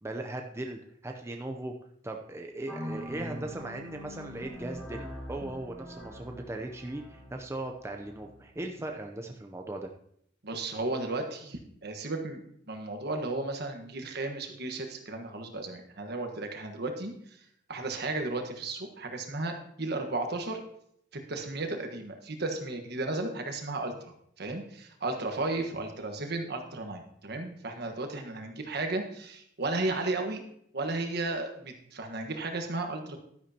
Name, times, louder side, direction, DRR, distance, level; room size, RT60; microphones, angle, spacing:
voice 1, 0.0-1.7 2.0-9.9, right 2 dB, 15° right, 3 dB, 0.6 m, -38 dB
sound 1, 2.7-9.0, equal, 10° left, 3.8 m, -43 dB
voice 2, 10.4-17.1 17.7-20.6 21.1-23.9 24.4-30.4 30.7-33.2, right 2 dB, 60° right, 5 dB, 1.4 m, -34 dB
11.5 x 10.5 x 2.9 m, 0.71 s
head